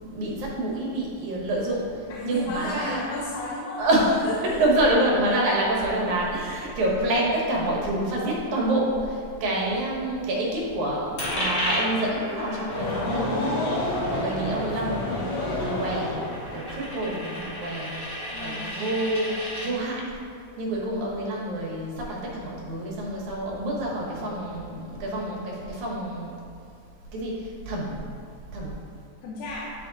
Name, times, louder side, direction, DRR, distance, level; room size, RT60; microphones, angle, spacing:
voice 1, 0.0-3.0 3.8-16.1 16.5-19.3 19.6-20.2 20.6-26.3 27.1-28.0 28.5-28.8, right 1 dB, 80° right, -3 dB, 2.7 m, -27 dB
voice 2, 2.1-3.8 4.2-4.6 13.9-14.3 18.3-18.7 29.2-29.7, left 2 dB, 85° left, -5 dB, 2.2 m, -34 dB
Coin (dropping), 11.2-19.7, equal, 30° left, 1.5 m, -33 dB
sound 1, 12.7-17.2, left 1 dB, 55° left, 2.0 m, -29 dB
10.5 x 3.6 x 4.0 m, 2.4 s
omnidirectional pair, 3.4 m